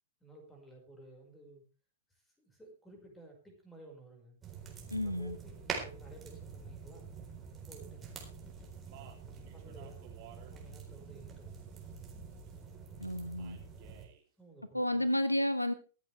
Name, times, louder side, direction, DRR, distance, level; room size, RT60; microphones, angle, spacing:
voice 1, 0.2-1.6 2.1-4.4 5.0-7.1 7.5-8.0 9.4-11.9 14.4-15.1, right 2 dB, 5° left, 2 dB, 5.3 m, -55 dB
sound 1, 4.4-14.0, right 5 dB, 15° right, 4.1 m, -46 dB
voice 2, 4.9-5.4 13.0-13.6 14.7-15.7, left 1 dB, 90° left, 14 dB, 1.0 m, -31 dB
Speech, 8.5-12.6 13.4-14.2, right 11 dB, 40° right, 3.1 m, -58 dB
24.5 x 8.4 x 3.4 m, 0.35 s
figure-of-eight pair, 105°, 0 cm